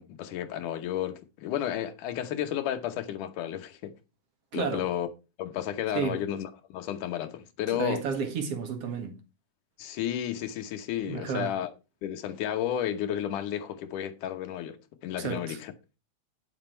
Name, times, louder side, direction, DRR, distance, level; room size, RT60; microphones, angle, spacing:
voice 1, 0.0-4.0 4.5-5.1 5.4-8.0 9.8-11.7 12.0-15.7, left 11 dB, 90° left, 2.6 m, -32 dB
voice 2, 4.5-4.9 5.9-6.2 7.8-9.2 11.1-11.6 15.2-15.6, right 6 dB, 55° right, 2.7 m, -31 dB
10.0 x 7.3 x 4.4 m
omnidirectional pair, 3.5 m